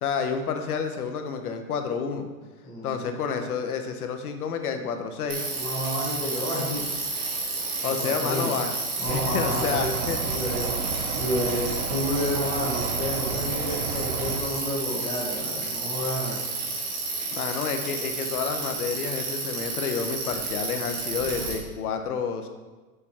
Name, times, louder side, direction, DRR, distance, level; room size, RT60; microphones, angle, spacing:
voice 1, 0.0-2.3 2.8-5.4 7.8-8.7 9.1-10.2 17.3-22.5, left 6 dB, 80° left, 6 dB, 1.0 m, -29 dB
voice 2, 2.6-3.1 5.5-6.9 7.8-8.6 9.0-10.7 11.1-16.4, left 1 dB, 10° left, -5 dB, 1.0 m, -30 dB
Bicycle, 5.3-21.5, right 3 dB, 35° right, 2.2 m, -31 dB
sound 1, 9.0-14.4, right 6 dB, 85° right, 0.9 m, -32 dB
6.9 x 4.9 x 4.3 m, 1.3 s
supercardioid pair, 165°, 44 cm